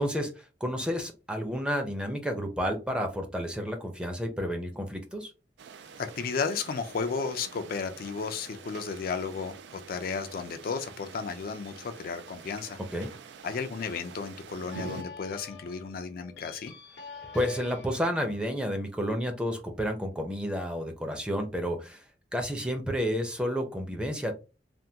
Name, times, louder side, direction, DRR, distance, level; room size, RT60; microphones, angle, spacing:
voice 1, 0.0-5.3 12.9-13.1 17.3-22.0 22.3-24.3, equal, 5° right, 0.6 m, -31 dB
sound 1, 5.6-15.0, right 6 dB, 85° right, 0.4 m, -46 dB
voice 2, 6.0-12.8 13.4-16.7, left 5 dB, 55° left, 0.4 m, -34 dB
sound 2, 14.7-19.8, left 3 dB, 85° left, 0.8 m, -47 dB
3.4 x 2.2 x 2.7 m
head